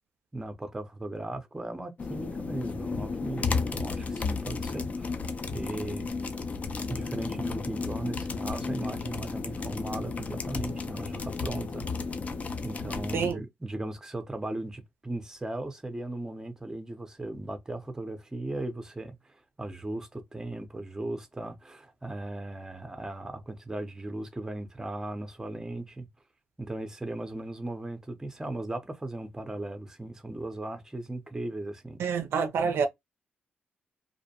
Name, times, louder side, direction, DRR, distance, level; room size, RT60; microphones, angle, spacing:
voice 1, 0.3-5.1 5.5-6.1 6.9-12.0 12.6-26.1 26.6-32.0, right 2 dB, 15° right, 0.5 m, -37 dB
sound 1, 2.0-13.3, left 4 dB, 35° left, 0.4 m, -33 dB
voice 2, 32.0-32.9, right 6 dB, 75° right, 0.4 m, -27 dB
2.5 x 2.1 x 2.7 m
cardioid pair, 110°, 4 cm